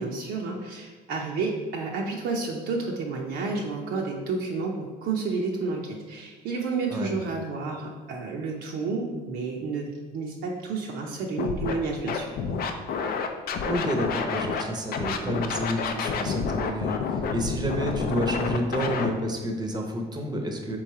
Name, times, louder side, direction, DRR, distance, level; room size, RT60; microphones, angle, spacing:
voice 1, 0.0-12.4, right 4 dB, 75° right, -1 dB, 0.6 m, -30 dB
Scratching (performance technique), 11.4-11.7 12.1-14.6 14.9-19.1, left 5 dB, 60° left, 0.4 m, -29 dB
voice 2, 13.6-20.8, equal, 25° right, 3 dB, 0.7 m, -30 dB
3.8 x 3.0 x 4.6 m, 1.3 s
cardioid pair, 110°, 17 cm